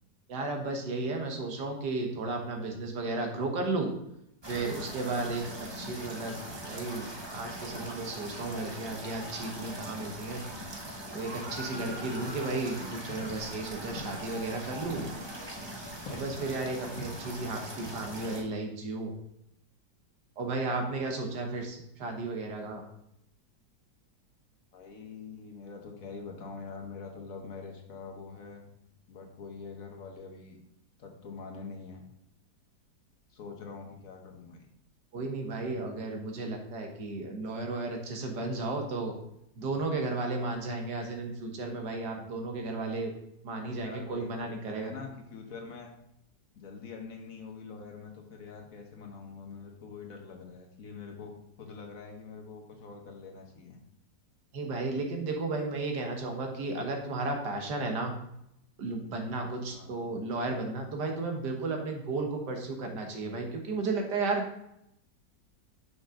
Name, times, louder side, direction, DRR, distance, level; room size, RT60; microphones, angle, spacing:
voice 1, 0.3-3.9 4.5-6.4 6.7-7.1 7.3-10.4 11.1-15.0 16.1-19.1 20.4-22.8 35.1-39.1 39.6-43.1 43.4-44.9 54.5-58.1 58.8-64.4, right 3 dB, 70° right, 3 dB, 1.8 m, -34 dB
sound 1, 4.4-18.4, right 1 dB, 20° right, 0.7 m, -41 dB
sound 2, 12.2-17.7, left 4 dB, 75° left, 2.1 m, -47 dB
voice 2, 24.7-28.6 29.1-30.6 31.0-32.0 33.3-34.7 43.8-45.9 46.5-53.8 59.7-60.1, left 4 dB, 55° left, 2 dB, 1.4 m, -45 dB
6.5 x 5.7 x 3.7 m, 0.79 s
omnidirectional pair, 1.9 m